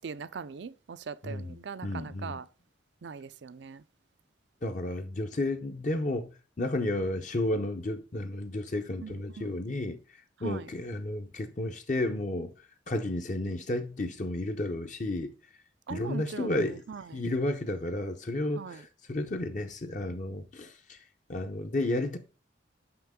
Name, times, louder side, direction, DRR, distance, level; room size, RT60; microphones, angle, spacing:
voice 1, 0.0-2.5 3.0-3.8 9.0-9.6 10.4-10.7 15.9-17.2 18.6-18.8, right 5 dB, 70° right, 0.5 m, -41 dB
voice 2, 1.2-2.4 4.6-10.0 10.4-15.3 15.9-16.8 17.1-21.0 21.3-22.2, left 1 dB, 40° left, 0.7 m, -32 dB
5.9 x 5.5 x 3.6 m
head